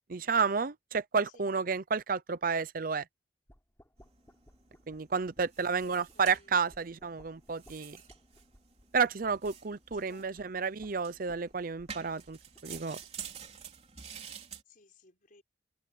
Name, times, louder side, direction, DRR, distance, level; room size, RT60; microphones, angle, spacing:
voice 1, 0.1-3.0 4.9-8.0 8.9-13.0, right 5 dB, 55° right, 0.7 m, -31 dB
sound 1, 3.5-13.5, equal, 15° left, 7.3 m, -61 dB
sound 2, 4.0-14.6, right 7 dB, 35° right, 3.5 m, -49 dB
voice 2, 5.6-6.8 9.9-10.6 14.7-15.4, left 3 dB, 50° left, 5.5 m, -61 dB
head